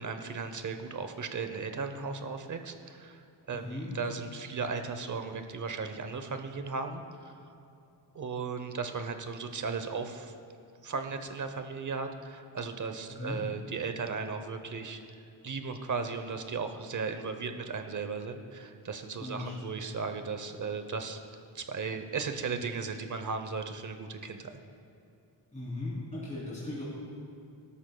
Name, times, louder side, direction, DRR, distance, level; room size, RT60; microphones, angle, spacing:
voice 1, 0.0-3.6 3.9-7.4 8.1-10.3 10.8-15.0 15.4-24.5, right 5 dB, 45° right, 7 dB, 0.8 m, -36 dB
voice 2, 3.5-3.9 13.1-13.4 19.2-19.7 25.5-26.8, left 2 dB, 15° left, -8 dB, 3.2 m, -38 dB
19.5 x 12.5 x 2.3 m, 2.6 s
wide cardioid pair, 145°, 44 cm